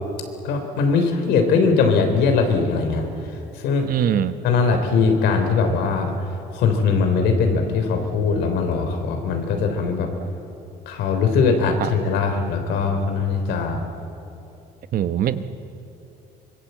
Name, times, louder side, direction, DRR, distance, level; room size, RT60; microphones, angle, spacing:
voice 1, 0.4-3.1 3.6-3.9 4.4-6.1 6.5-10.1 10.9-13.8, left 4 dB, 85° left, 5 dB, 3.5 m, -20 dB
voice 2, 3.9-4.3 14.9-15.5, right 10 dB, 60° right, 11 dB, 1.1 m, -22 dB
24.5 x 22.5 x 8.0 m, 2.8 s
cardioid pair, 110°, 17 cm